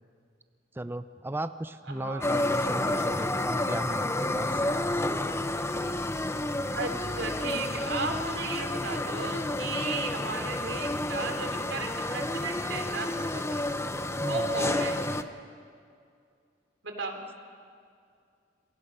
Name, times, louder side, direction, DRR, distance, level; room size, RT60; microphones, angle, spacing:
voice 1, 0.7-4.6 14.2-14.5, right 1 dB, 10° right, 11 dB, 0.5 m, -36 dB
voice 2, 1.9-2.4 6.7-13.6 14.2-15.0 16.8-17.2, right 3 dB, 85° right, 4 dB, 3.2 m, -35 dB
sound 1, 2.2-15.2, left 1 dB, 15° left, 0.8 m, -30 dB
27.5 x 23.0 x 5.5 m, 2.3 s
head